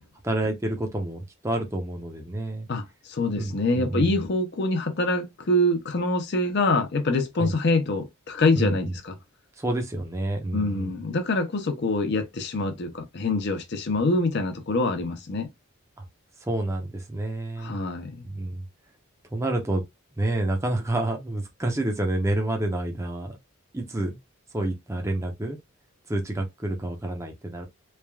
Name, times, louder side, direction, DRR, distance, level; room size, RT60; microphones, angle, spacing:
voice 1, 0.2-2.7 3.3-4.2 7.4-7.5 8.6-9.0 9.6-10.9 16.0-16.1 16.4-17.8 18.2-18.6 19.3-19.8 20.2-23.4 23.7-24.2 24.5-25.6 26.1-27.7, right 1 dB, 15° right, 0.6 m, -28 dB
voice 2, 2.7-9.2 10.5-15.5 17.6-18.2, left 2 dB, 50° left, 0.5 m, -25 dB
3.2 x 2.3 x 2.2 m
head